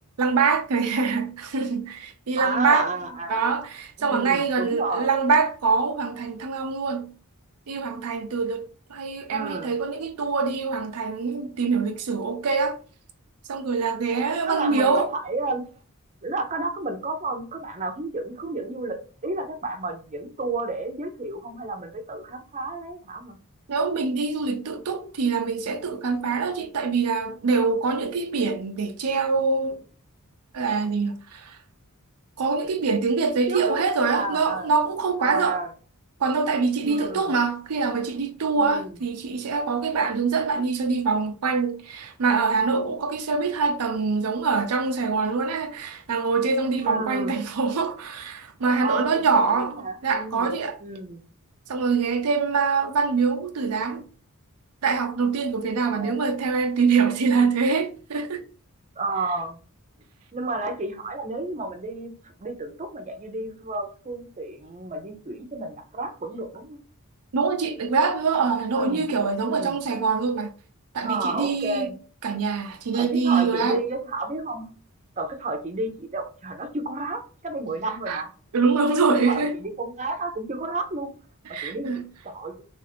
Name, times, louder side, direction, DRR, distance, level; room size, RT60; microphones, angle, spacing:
voice 1, 0.2-2.9 3.3-7.1 7.7-12.8 13.5-15.1 23.7-29.8 30.5-31.6 32.4-35.6 36.2-49.7 50.0-50.8 51.7-54.1 54.8-58.5 67.3-70.5 70.9-71.9 72.2-73.8 78.1-78.2 78.5-79.5 81.5-82.1, right 4 dB, 85° right, 0.5 m, -24 dB
voice 2, 2.4-3.5 4.0-5.1 9.3-9.7 14.3-15.6 16.2-23.4 33.5-33.8 34.1-34.7 35.2-35.7 36.9-37.3 38.5-38.9 46.8-47.4 48.8-50.5 50.8-51.2 55.8-56.2 59.0-59.6 60.3-66.8 68.7-69.1 69.4-69.8 71.0-71.9 72.9-74.7 75.2-78.3 79.2-81.1 81.6-81.9 82.2-82.5, right 2 dB, 30° right, 0.6 m, -31 dB
3.5 x 2.5 x 4.2 m
head